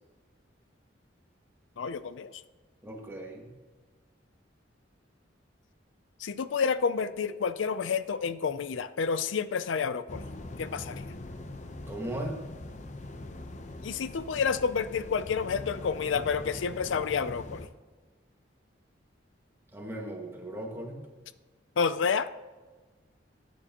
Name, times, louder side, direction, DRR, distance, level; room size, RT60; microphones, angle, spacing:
voice 1, 1.8-2.4 6.2-10.3 10.6-11.1 13.8-17.7 21.8-22.3, left 6 dB, 85° left, 14 dB, 0.4 m, -29 dB
voice 2, 2.8-3.6 11.9-12.4 19.7-21.0, right 1 dB, 15° right, -1 dB, 1.7 m, -37 dB
sound 1, 10.1-17.7, left 2 dB, 40° left, 0.7 m, -42 dB
14.0 x 9.2 x 2.9 m, 1.3 s
head